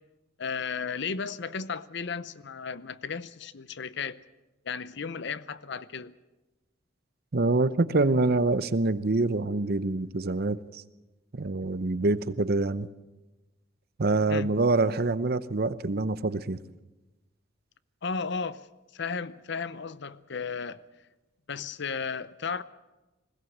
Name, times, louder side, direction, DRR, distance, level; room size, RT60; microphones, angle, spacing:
voice 1, 0.4-4.2 4.6-6.1 14.3-14.5 18.0-18.7 18.9-20.8 21.5-22.6, left 5 dB, 65° left, 0.7 m, -34 dB
voice 2, 7.3-10.8 11.3-12.9 14.0-16.6, right 3 dB, 55° right, 0.8 m, -26 dB
20.5 x 17.0 x 7.9 m
head